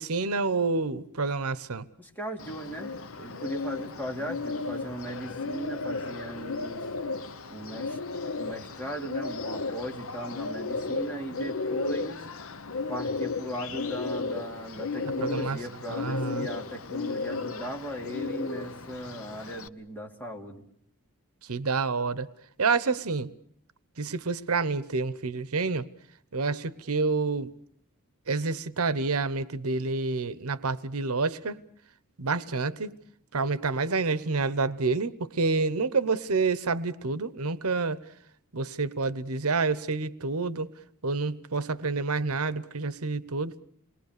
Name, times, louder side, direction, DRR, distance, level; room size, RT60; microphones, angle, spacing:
voice 1, 0.0-1.8 15.2-15.6 15.9-16.5 21.5-22.3 22.6-23.3 24.0-25.8 26.3-27.5 28.3-31.6 32.2-33.0 33.3-38.0 38.5-40.7 41.0-43.6, right 4 dB, 80° right, 15 dB, 1.0 m, -28 dB
voice 2, 2.0-6.9 7.5-8.0 8.4-12.2 12.9-20.6, right 1 dB, 10° left, 1 dB, 3.0 m, -38 dB
Bird, 2.4-19.7, left 4 dB, 65° left, 0.9 m, -34 dB
28.0 x 21.5 x 6.7 m, 0.67 s
head